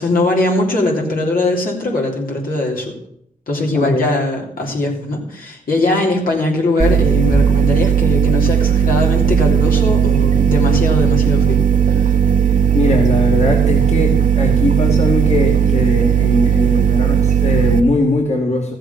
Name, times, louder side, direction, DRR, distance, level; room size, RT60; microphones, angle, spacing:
voice 1, 0.0-2.9 3.5-11.6 12.0-12.1, left 2 dB, 80° left, -1 dB, 3.3 m, -20 dB
voice 2, 3.7-4.1 12.5-18.8, left 1 dB, 50° left, 0 dB, 2.4 m, -20 dB
sound 1, 6.8-17.8, right 8 dB, 65° right, 1.2 m, -15 dB
14.0 x 7.8 x 7.0 m, 0.72 s
cardioid pair, 65°, 15 cm